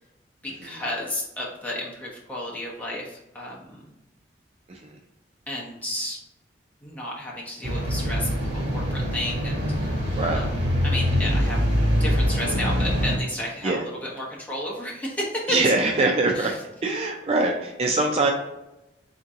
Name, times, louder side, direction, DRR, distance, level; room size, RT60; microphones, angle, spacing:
voice 1, 0.4-3.9 5.5-6.2 6.8-11.7 12.0-15.6 16.3-16.6, left 1 dB, 10° left, -4 dB, 0.9 m, -32 dB
sound 1, 7.6-13.2, equal, 80° right, 1.3 m, -24 dB
voice 2, 15.5-16.6 16.8-18.3, right 2 dB, 35° right, 2 dB, 0.3 m, -23 dB
3.6 x 2.8 x 3.6 m, 0.92 s
head